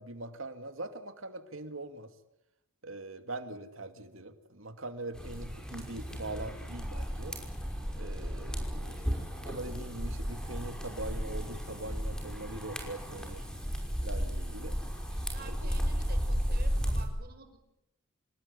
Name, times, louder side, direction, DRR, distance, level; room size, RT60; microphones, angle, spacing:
voice 1, 0.0-2.1 2.8-7.4 8.0-9.2 9.4-13.5 14.0-14.8 15.1-15.6, right 2 dB, 75° right, 8 dB, 2.6 m, -42 dB
sound 1, 5.1-17.1, equal, 5° left, 5.7 m, -34 dB
voice 2, 15.2-17.6, right 3 dB, 50° right, 7 dB, 5.5 m, -50 dB
28.0 x 19.0 x 9.9 m, 0.88 s
head